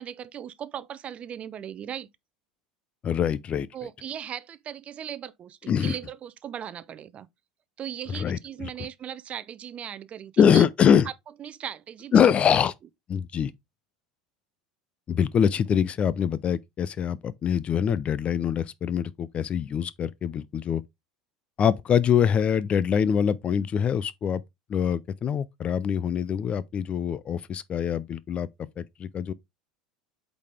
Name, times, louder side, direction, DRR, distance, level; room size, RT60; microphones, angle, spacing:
voice 1, 0.0-2.1 3.7-7.3 7.8-10.6 11.4-12.3, right 9 dB, 35° right, 0.6 m, -38 dB
voice 2, 3.0-3.7 5.7-6.0 8.1-8.7 10.4-11.1 12.1-12.7 13.1-13.5 15.1-20.8 21.6-24.4 24.7-28.5 28.8-29.3, left 8 dB, 35° left, 0.5 m, -24 dB
8.3 x 4.1 x 3.3 m
figure-of-eight pair, 75°, 4 cm